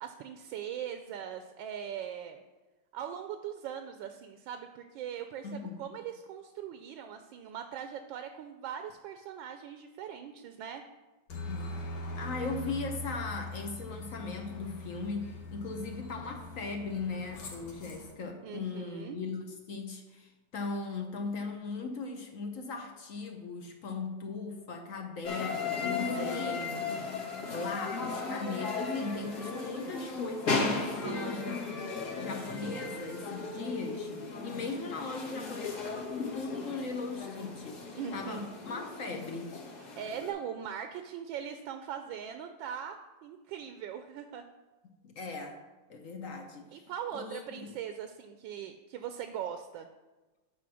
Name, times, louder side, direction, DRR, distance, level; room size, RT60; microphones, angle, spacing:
voice 1, 0.0-2.4 2.9-10.8 18.4-19.2 31.0-31.4 38.0-38.5 40.0-43.0 43.2-44.4 46.7-49.9, right 9 dB, 80° right, 7 dB, 1.3 m, -40 dB
voice 2, 5.4-5.9 11.3-31.8 32.2-39.6 45.0-45.6 45.9-46.7 47.1-47.8, left 4 dB, 60° left, 4 dB, 0.9 m, -39 dB
Aircraft, 11.3-18.1, left 1 dB, 90° left, 2.1 m, -42 dB
sound 1, 25.2-40.3, left 4 dB, 40° left, 1.6 m, -36 dB
8.5 x 4.5 x 6.2 m, 1.2 s
omnidirectional pair, 2.1 m